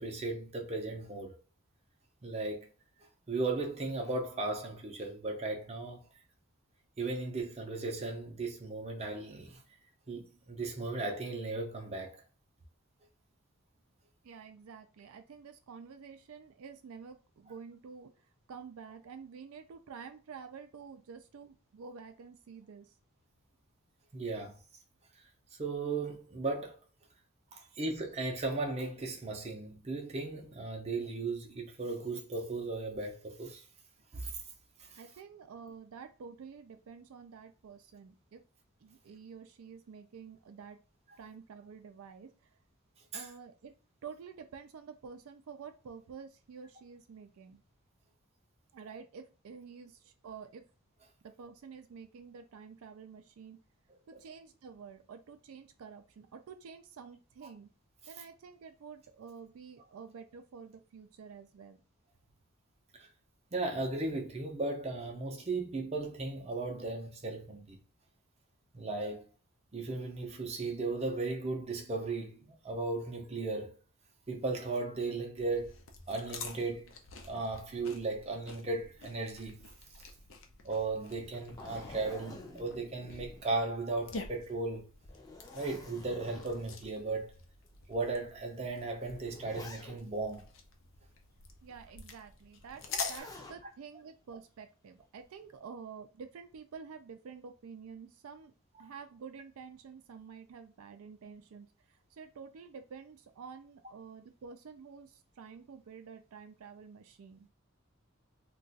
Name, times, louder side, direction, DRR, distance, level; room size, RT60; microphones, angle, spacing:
voice 1, 0.0-1.3 2.2-2.7 3.3-6.0 7.0-9.6 10.1-12.2 24.1-24.6 25.6-26.8 27.5-33.6 34.1-34.4 34.8-35.0 43.1-43.3 54.1-54.2 62.9-63.1 63.5-67.8 68.7-69.3 69.7-73.8 74.3-75.7 76.1-76.9 77.2-79.6 80.6-84.9 85.5-87.3 87.9-90.5 93.2-93.3, right 3 dB, 30° right, 0.5 m, -36 dB
voice 2, 14.2-23.0 27.6-27.8 35.0-38.4 38.8-40.8 41.2-42.3 43.1-43.8 44.0-47.6 48.7-50.6 51.2-53.6 54.1-57.7 58.1-61.8 91.6-98.5 98.8-107.5, right 6 dB, 80° right, 0.4 m, -49 dB
sound 1, 75.4-93.2, left 4 dB, 60° left, 0.5 m, -47 dB
Zipper (clothing), 81.1-84.0 84.4-84.5 85.0-86.9 87.6-87.7 88.7-90.3 92.7-93.6 95.0-95.5, left 2 dB, 15° left, 0.5 m, -50 dB
2.4 x 2.3 x 3.9 m
head